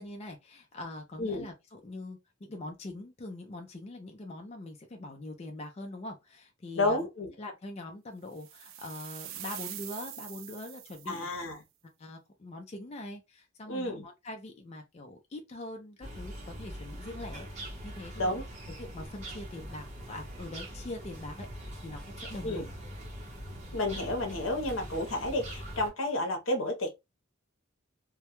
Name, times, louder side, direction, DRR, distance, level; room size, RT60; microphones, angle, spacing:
voice 1, 0.0-7.1 7.4-11.3 12.0-18.4 18.8-22.6, left 2 dB, 30° left, 0.4 m, -43 dB
voice 2, 6.8-7.3 11.1-11.6 13.7-14.0 18.2-18.4 22.4-22.7 23.7-26.9, left 1 dB, 75° left, 0.8 m, -31 dB
sound 1, 8.4-11.4, right 12 dB, 80° right, 0.3 m, -44 dB
sound 2, 16.0-25.9, equal, 35° right, 0.8 m, -43 dB
2.2 x 2.1 x 2.8 m
head